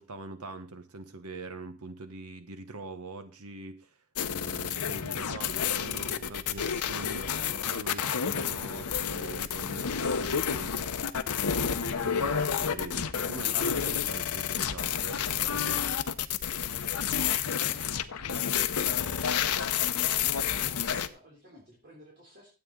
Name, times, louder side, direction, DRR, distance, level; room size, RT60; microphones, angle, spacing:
voice 1, 0.0-4.0 4.2-15.9, right 3 dB, 85° right, 9 dB, 1.1 m, -43 dB
sound 1, 4.2-21.1, left 8 dB, 90° left, 0.8 m, -30 dB
voice 2, 17.2-22.5, equal, 45° right, -3 dB, 3.1 m, -55 dB
12.5 x 8.3 x 3.8 m, 0.33 s
head